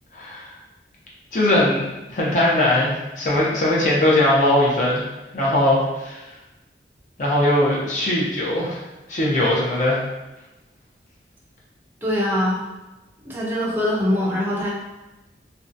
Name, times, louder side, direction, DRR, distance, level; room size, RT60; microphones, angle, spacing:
voice 1, 0.1-0.5 1.3-5.0 5.3-6.2 7.2-8.8 9.1-10.0, left 1 dB, 45° left, -5 dB, 0.6 m, -20 dB
voice 2, 12.0-12.6 13.2-14.7, left 1 dB, 10° right, -5 dB, 0.4 m, -22 dB
2.6 x 2.2 x 2.5 m, 1.0 s
head